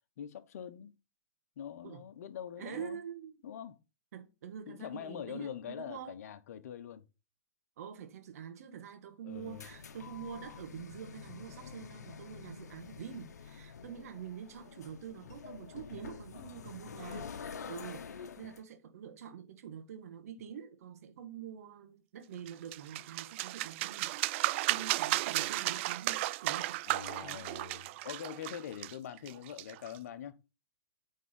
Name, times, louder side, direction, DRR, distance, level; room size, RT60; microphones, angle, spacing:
voice 1, 0.2-0.9 1.6-3.0 3.4-3.8 4.7-7.0 9.2-9.7 16.3-16.8 26.9-30.4, left 9 dB, 70° left, 1.1 m, -44 dB
voice 2, 2.6-3.3 4.1-6.1 7.8-24.4 24.7-26.8 27.2-27.5, right 8 dB, 70° right, 1.5 m, -46 dB
sound 1, 9.3-18.6, left 6 dB, 90° left, 0.9 m, -47 dB
sound 2, 22.5-30.0, right 18 dB, 45° right, 0.3 m, -34 dB
9.2 x 3.8 x 5.7 m
hypercardioid pair, 130°, 9 cm